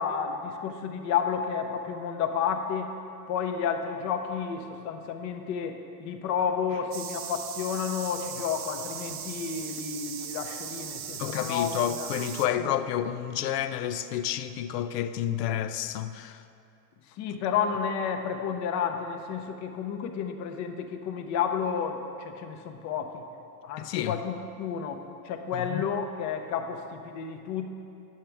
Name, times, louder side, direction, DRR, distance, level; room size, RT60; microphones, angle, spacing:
voice 1, 0.0-2.9 3.3-12.1 12.6-12.7 17.2-23.2 23.6-27.7, left 7 dB, 35° left, 0.7 m, -31 dB
sound 1, 6.9-12.5, right 8 dB, 30° right, 0.4 m, -38 dB
voice 2, 11.2-16.4 23.8-24.2 25.5-25.8, left 10 dB, 80° left, 0.6 m, -30 dB
10.0 x 7.4 x 3.4 m
supercardioid pair, 120°, 48 cm